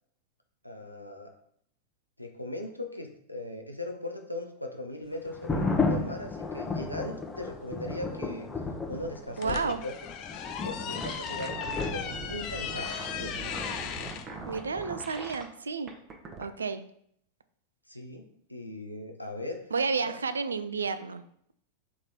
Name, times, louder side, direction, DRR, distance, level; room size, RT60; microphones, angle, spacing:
voice 1, 0.6-1.3 2.2-8.5 8.9-9.9 10.5-13.4 17.9-19.7, left 1 dB, 90° left, 4 dB, 0.6 m, -39 dB
sound 1, 5.3-14.7, left 3 dB, 15° left, 0.7 m, -34 dB
sound 2, 9.1-14.3, left 8 dB, 40° left, 0.4 m, -37 dB
voice 2, 9.4-9.8 14.5-15.9 16.4-16.8 19.7-21.2, right 5 dB, 75° right, 11 dB, 0.3 m, -31 dB
sound 3, 11.0-15.4 15.9-16.4, right 3 dB, 25° right, 0.8 m, -42 dB
3.6 x 3.1 x 4.2 m, 0.66 s
figure-of-eight pair, 90°, 0 cm